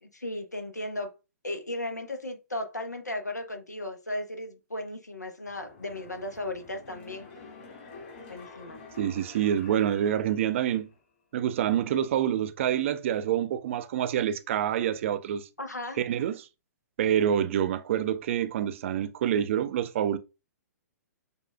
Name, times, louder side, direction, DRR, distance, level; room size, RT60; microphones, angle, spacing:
voice 1, 0.0-1.1 1.4-7.3 8.3-8.8 15.6-16.0, left 1 dB, 90° left, 0.9 m, -36 dB
sound 1, 5.5-11.0 11.4-11.5, left 4 dB, 45° left, 1.8 m, -49 dB
voice 2, 9.0-10.9 11.3-15.5 16.0-16.5 17.0-20.2, right 10 dB, 50° right, 0.5 m, -27 dB
6.8 x 2.4 x 2.2 m
figure-of-eight pair, 120°, 9 cm